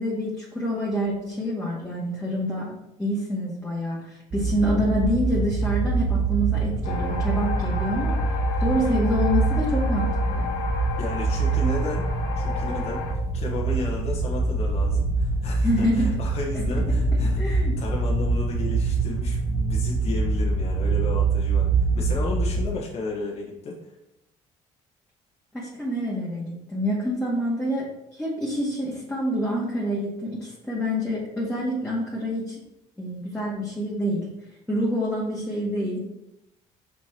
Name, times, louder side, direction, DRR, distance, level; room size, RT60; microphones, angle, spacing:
voice 1, 0.0-2.7 3.0-10.5 15.6-16.2 16.5-16.6 17.4-17.8 25.5-32.6 33.0-34.3 34.7-36.0, equal, 5° left, -7 dB, 2.1 m, -27 dB
sound 1, 4.3-22.7, right 3 dB, 40° right, 1.0 m, -24 dB
sound 2, 6.8-13.1, left 5 dB, 85° left, 1.7 m, -33 dB
voice 2, 11.0-12.1 12.4-13.0 13.3-23.9, left 2 dB, 55° left, -4 dB, 1.5 m, -33 dB
6.0 x 5.4 x 4.5 m, 0.88 s
cardioid pair, 110°, 13 cm